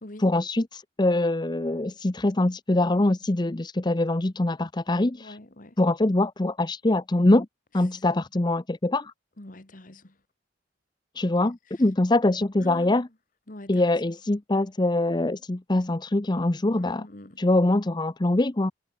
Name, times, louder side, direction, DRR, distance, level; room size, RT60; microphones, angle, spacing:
voice 1, 0.2-5.4 5.8-7.5 7.7-9.1 11.2-13.1 13.7-17.1 17.4-18.7, left 2 dB, 25° left, 0.7 m, -23 dB
voice 2, 5.2-5.7 9.4-10.1 12.6-13.0 13.5-14.1 16.8-17.4, left 1 dB, 50° left, 1.9 m, -44 dB
head